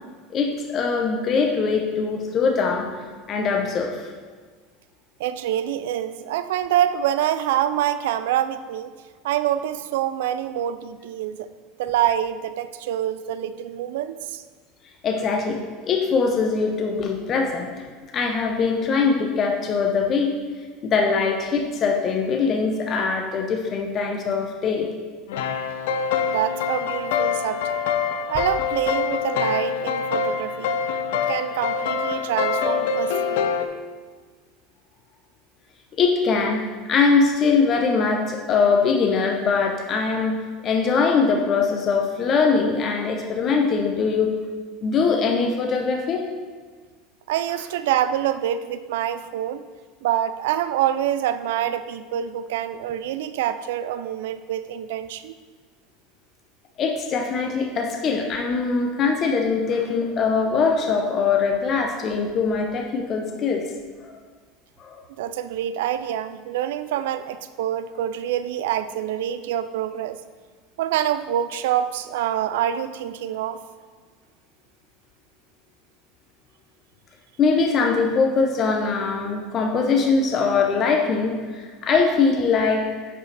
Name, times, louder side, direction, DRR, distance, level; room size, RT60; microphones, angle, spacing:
voice 1, 0.3-2.9 3.3-4.1 15.0-15.6 15.8-17.7 18.1-20.3 20.8-24.9 36.0-44.3 44.8-46.2 56.8-63.7 64.0-64.2 64.8-65.0 77.4-82.9, left 5 dB, 35° left, 2 dB, 0.7 m, -22 dB
voice 2, 5.2-8.9 9.2-11.5 11.8-14.4 26.2-27.8 28.3-30.8 31.1-33.5 47.3-49.7 50.0-55.3 65.2-70.2 70.8-73.6, right 11 dB, 85° right, 13 dB, 0.3 m, -26 dB
sound 1, 25.3-33.7, left 6 dB, 80° left, 0.5 m, -25 dB
9.5 x 4.8 x 3.3 m, 1.5 s
supercardioid pair, 125°, 0 cm